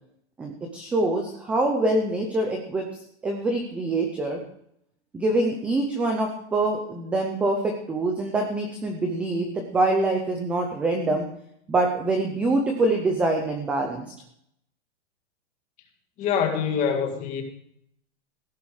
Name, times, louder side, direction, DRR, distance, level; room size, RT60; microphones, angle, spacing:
voice 1, 0.4-2.8 3.2-4.4 5.1-11.3 11.7-14.0, right 2 dB, 5° right, 3 dB, 0.5 m, -25 dB
voice 2, 16.2-17.4, left 7 dB, 20° left, 4 dB, 1.9 m, -25 dB
15.5 x 10.5 x 4.8 m, 0.69 s
supercardioid pair, 175°, 35 cm